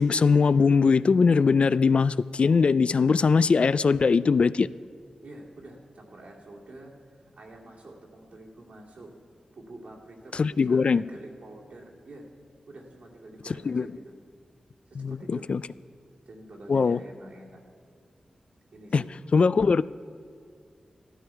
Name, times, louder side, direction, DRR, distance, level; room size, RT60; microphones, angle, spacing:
voice 1, 0.0-4.7 10.3-11.0 13.7-13.9 15.0-15.6 16.7-17.0 18.9-19.0 19.3-19.8, left 5 dB, 60° left, 17 dB, 0.3 m, -21 dB
voice 2, 5.2-9.1 9.5-12.3 12.7-14.1 14.9-15.5 16.3-17.6 18.7-19.1, right 2 dB, 75° right, -2 dB, 2.5 m, -47 dB
14.0 x 13.0 x 4.6 m, 2.3 s
cardioid pair, 65°, 2 cm